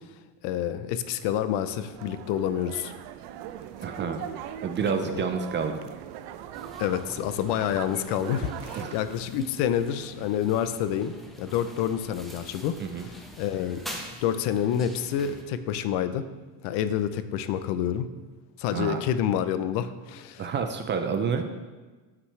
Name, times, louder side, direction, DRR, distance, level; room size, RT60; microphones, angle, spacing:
voice 1, 0.4-2.9 5.0-5.2 6.8-11.1 11.4-12.8 13.4-13.8 14.2-16.3 16.6-18.1 18.6-20.4, left 9 dB, 65° left, 12 dB, 0.7 m, -28 dB
sound 1, 1.2-8.9, right 10 dB, 70° right, 0.7 m, -40 dB
voice 2, 3.8-4.2 4.6-5.8 8.8-9.0 12.8-13.1 18.7-19.0 20.4-21.4, right 6 dB, 25° right, 7 dB, 0.4 m, -29 dB
sound 2, 6.5-15.4, equal, ahead, 0.8 m, -45 dB
12.5 x 6.0 x 3.3 m, 1.3 s
cardioid pair, 145°, 44 cm